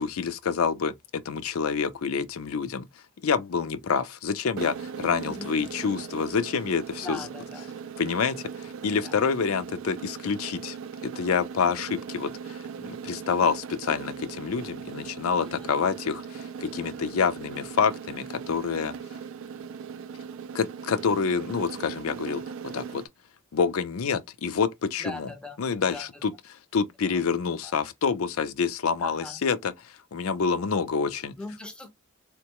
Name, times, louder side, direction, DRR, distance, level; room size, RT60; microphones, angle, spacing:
voice 1, 0.0-2.9 3.2-7.3 8.0-10.8 11.0-18.9 20.5-23.0 23.5-25.3 25.6-31.3, left 6 dB, 80° left, 0.5 m, -27 dB
sound 1, 4.6-23.1, right 6 dB, 65° right, 0.3 m, -39 dB
voice 2, 7.0-7.7 9.0-9.1 15.4-15.7 25.0-25.6 25.9-26.1 27.0-27.2 27.6-27.7 29.0-29.4 31.4-31.9, left 1 dB, 5° left, 0.5 m, -40 dB
3.7 x 2.1 x 2.9 m
head